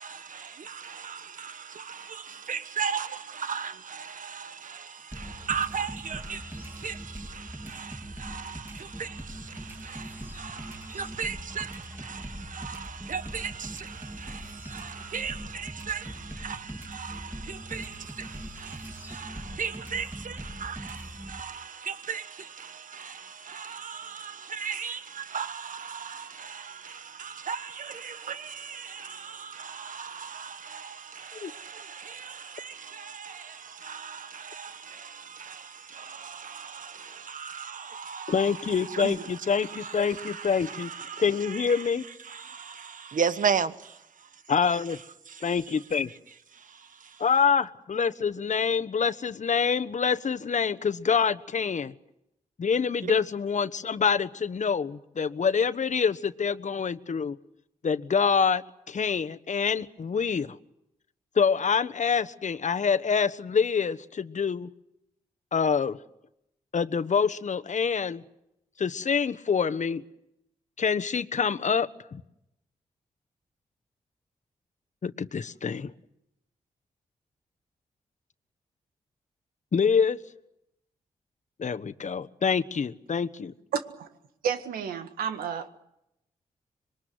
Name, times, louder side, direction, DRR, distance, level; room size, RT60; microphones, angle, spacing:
voice 1, 0.0-44.3 44.7-45.8 46.1-46.2 46.5-47.2 53.0-53.1, right 6 dB, 65° right, 1.5 m, -37 dB
sound 1, 5.1-21.4, equal, 15° right, 3.6 m, -41 dB
voice 2, 38.3-40.9 41.2-42.1 44.5-45.0 45.4-46.1 47.2-51.9 52.6-57.4 57.8-60.5 61.3-64.7 65.5-66.0 66.7-68.2 68.8-70.0 70.8-72.2 75.0-75.9 79.7-80.2 81.6-83.5, left 6 dB, 55° left, 1.3 m, -26 dB
voice 3, 84.4-85.7, right 7 dB, 90° right, 1.7 m, -31 dB
26.0 x 22.5 x 8.0 m
supercardioid pair, 45°, 15 cm